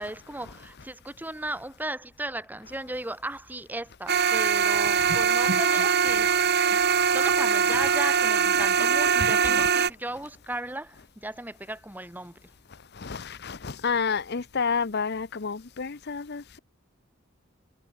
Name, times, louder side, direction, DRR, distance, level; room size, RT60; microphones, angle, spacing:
voice 1, 0.0-12.4, right 1 dB, 10° right, 1.5 m, -36 dB
sound 1, 4.1-9.9, right 6 dB, 50° right, 1.6 m, -22 dB
voice 2, 13.0-16.6, left 5 dB, 55° left, 0.8 m, -30 dB
head